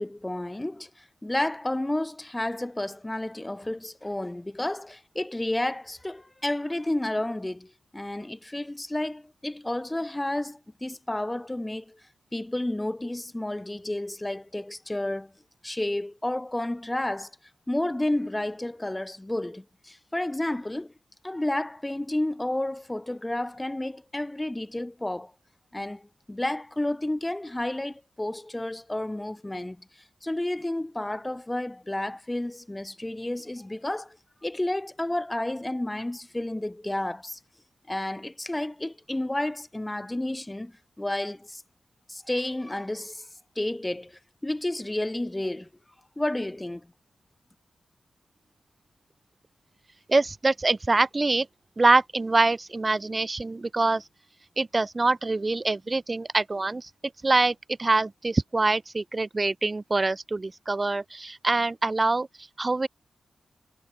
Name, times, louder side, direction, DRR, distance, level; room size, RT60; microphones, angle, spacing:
voice 1, 0.0-12.0 12.3-15.3 15.6-17.3 17.7-20.9 21.2-25.3 25.7-29.9 30.2-34.2 34.4-37.4 37.9-41.6 42.1-43.3 43.6-45.7 46.2-46.9, left 1 dB, 15° left, 7.8 m, -31 dB
voice 2, 50.1-51.5 51.8-54.1 54.6-56.9 57.2-62.9, right 3 dB, 30° right, 3.2 m, -24 dB
wide cardioid pair, 90°, 0 cm